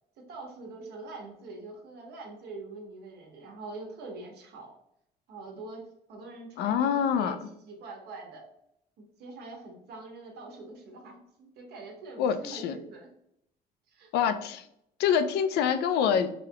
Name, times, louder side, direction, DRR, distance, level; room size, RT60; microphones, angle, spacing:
voice 1, 0.2-4.7 5.3-8.4 9.0-13.1 13.9-14.1, right 3 dB, 75° right, 1 dB, 1.2 m, -44 dB
voice 2, 6.6-7.4 12.2-12.8 14.1-14.6 15.0-16.3, left 8 dB, 80° left, 11 dB, 0.4 m, -26 dB
5.0 x 2.3 x 2.9 m, 0.77 s
cardioid pair, 110°, 17 cm